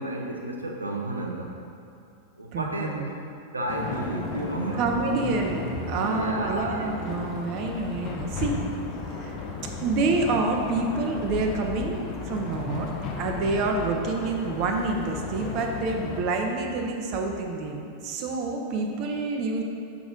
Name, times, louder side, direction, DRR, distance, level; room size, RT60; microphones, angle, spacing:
voice 1, 0.0-1.5 2.4-3.0 3.5-4.8 5.9-6.9 13.3-13.6, right 1 dB, 80° right, 0 dB, 0.6 m, -32 dB
voice 2, 2.5-3.1 4.7-8.6 9.1-9.4 9.8-12.9 13.2-19.6, right 3 dB, 40° right, 2 dB, 0.7 m, -27 dB
sound 1, 3.7-16.2, left 4 dB, 40° left, 0.8 m, -35 dB
6.0 x 5.9 x 3.9 m, 2.6 s
figure-of-eight pair, 90°, 0 cm